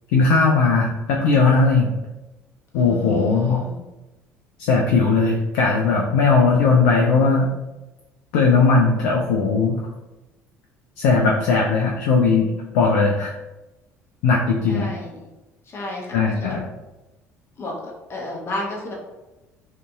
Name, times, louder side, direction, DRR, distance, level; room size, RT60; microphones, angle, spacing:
voice 1, 0.1-1.9 2.7-3.6 4.6-7.5 8.3-9.8 11.0-12.5 12.7-13.3 14.2-14.9 16.1-16.6, left 4 dB, 60° left, -1 dB, 0.4 m, -18 dB
voice 2, 2.7-3.9 11.5-11.8 14.7-15.2 15.6-16.6 17.6-18.9, left 1 dB, 30° left, -3 dB, 0.7 m, -33 dB
2.6 x 2.5 x 2.2 m, 1.0 s
figure-of-eight pair, 55°, 8 cm